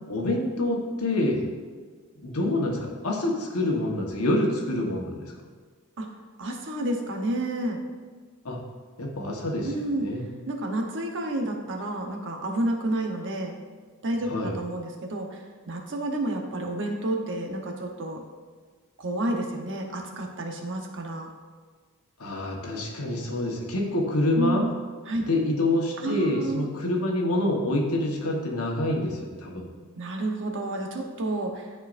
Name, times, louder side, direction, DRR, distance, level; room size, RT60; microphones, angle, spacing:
voice 1, 0.1-1.5 2.1-5.3 8.4-8.6 9.0-10.2 14.3-14.6 22.2-24.7 25.2-29.7, left 1 dB, 80° left, 0 dB, 1.3 m, -27 dB
voice 2, 6.4-7.8 9.6-10.1 10.5-13.6 14.0-15.4 15.7-18.2 19.0-21.3 24.4-24.7 25.1-25.2 26.0-26.7 29.9-31.7, right 1 dB, 60° right, 2 dB, 1.0 m, -30 dB
12.0 x 4.5 x 2.6 m, 1.5 s
head